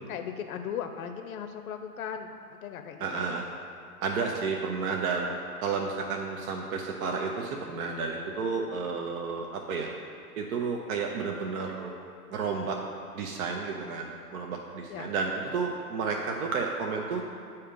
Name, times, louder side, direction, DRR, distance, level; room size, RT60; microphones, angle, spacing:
voice 1, 0.0-3.1 14.9-15.1, left 8 dB, 65° left, 7 dB, 0.5 m, -37 dB
voice 2, 3.0-3.4 4.0-9.9 10.4-11.9 12.3-12.8 13.1-17.2, right 4 dB, 65° right, 1 dB, 0.7 m, -31 dB
7.5 x 2.9 x 5.0 m, 2.4 s
hypercardioid pair, 130°, 46 cm